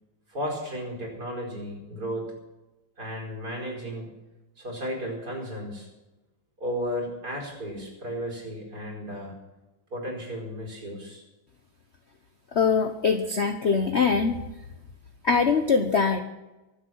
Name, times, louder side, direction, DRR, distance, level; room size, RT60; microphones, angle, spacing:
voice 1, 0.3-2.3 3.0-4.1 4.6-5.9 6.6-9.3 9.9-11.2, equal, 50° right, -2 dB, 5.4 m, -34 dB
voice 2, 12.5-14.3 15.2-16.2, left 5 dB, 45° left, 6 dB, 0.9 m, -22 dB
23.5 x 8.2 x 6.3 m, 1.0 s
omnidirectional pair, 2.2 m